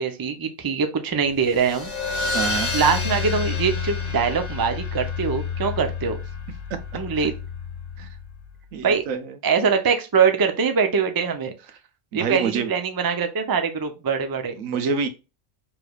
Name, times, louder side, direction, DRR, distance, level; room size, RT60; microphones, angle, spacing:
voice 1, 0.0-1.9 2.7-6.2 6.9-7.3 8.8-9.0 9.4-11.5 12.1-14.5, right 6 dB, 30° right, 0.4 m, -23 dB
sound 1, 1.4-8.4, left 5 dB, 55° left, 1.4 m, -29 dB
voice 2, 2.3-2.7 7.1-7.3 8.0-8.1 8.7-9.4 12.1-12.7 14.6-15.1, right 5 dB, 85° right, 1.2 m, -27 dB
5.0 x 3.3 x 2.3 m
omnidirectional pair, 1.4 m